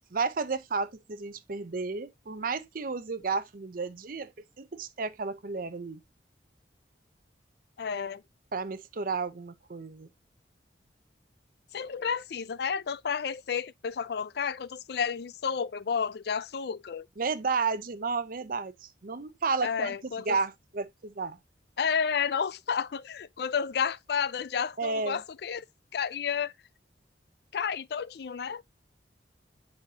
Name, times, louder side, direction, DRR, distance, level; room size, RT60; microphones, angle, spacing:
voice 1, 0.1-4.3 4.6-6.0 8.5-10.1 17.2-19.9 20.3-21.4 24.8-25.2, right 4 dB, 50° right, 0.7 m, -32 dB
voice 2, 7.8-8.2 11.7-17.1 19.6-20.4 21.8-25.6 25.9-26.5 27.5-28.6, left 6 dB, 60° left, 0.4 m, -31 dB
7.8 x 5.7 x 2.8 m
head